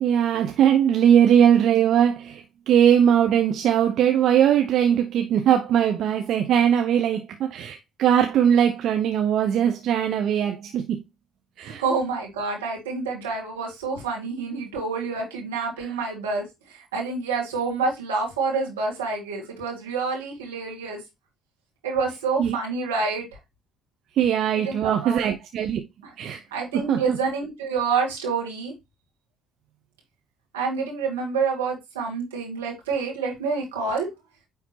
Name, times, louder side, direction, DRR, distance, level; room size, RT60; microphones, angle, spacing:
voice 1, 0.0-11.0 11.6-11.8 15.8-15.9 22.4-22.6 24.2-25.8 26.2-26.4 26.7-27.2, right 9 dB, 65° right, 0.7 m, -20 dB
voice 2, 11.6-21.0 21.8-23.3 24.6-25.3 26.0-26.1 26.5-28.7 30.5-34.1, right 4 dB, 85° right, 2.1 m, -28 dB
9.3 x 3.6 x 2.9 m
hypercardioid pair, 50°, 0 cm